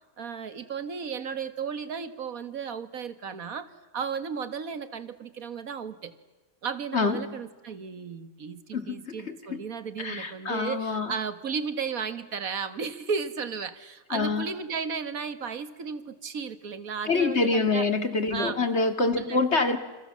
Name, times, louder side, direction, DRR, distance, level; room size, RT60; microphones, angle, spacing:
voice 1, 0.2-6.1 6.6-17.9 18.3-18.6 19.1-19.5, right 6 dB, 80° right, 12 dB, 2.0 m, -34 dB
voice 2, 6.9-7.4 8.7-9.6 10.0-11.1 14.1-14.5 17.1-19.8, left 3 dB, 50° left, 8 dB, 2.5 m, -26 dB
28.5 x 27.0 x 7.4 m, 1.2 s
omnidirectional pair, 1.5 m